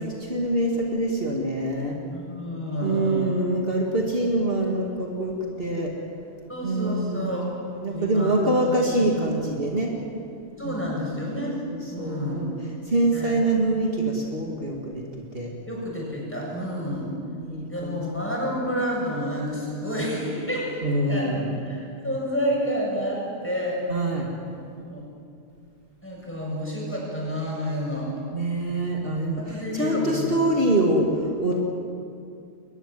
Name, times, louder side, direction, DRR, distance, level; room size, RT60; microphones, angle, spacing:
voice 1, 0.0-2.0 2.8-5.9 6.6-7.3 7.8-9.9 10.6-10.9 11.7-12.5 12.9-15.0 15.3-15.5 16.6-16.7 17.0-18.0 20.8-21.5 23.9-24.3 28.3-31.6, right 1 dB, 55° right, 0 dB, 2.4 m, -25 dB
voice 2, 2.1-3.4 6.5-7.6 7.9-8.7 10.6-11.5 11.9-12.5 13.1-13.3 15.7-17.2 17.7-23.8 24.5-24.6 24.9-25.0 26.0-28.1 29.3-30.4, equal, 10° left, -4 dB, 7.4 m, -29 dB
22.5 x 20.5 x 7.7 m, 2.5 s
omnidirectional pair, 1.2 m